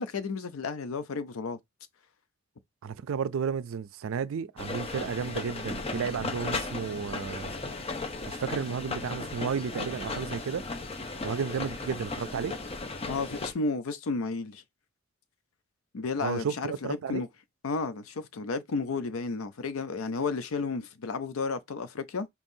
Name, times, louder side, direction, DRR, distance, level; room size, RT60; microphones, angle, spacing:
voice 1, 0.0-1.6 13.1-14.6 15.9-17.3 17.6-22.3, left 4 dB, 90° left, 0.6 m, -32 dB
voice 2, 2.8-7.5 8.3-10.6 11.2-12.5 16.2-16.5 16.8-17.2, right 6 dB, 75° right, 0.4 m, -32 dB
sound 1, 4.6-13.5, left 3 dB, 30° left, 0.6 m, -36 dB
5.4 x 2.9 x 2.6 m
head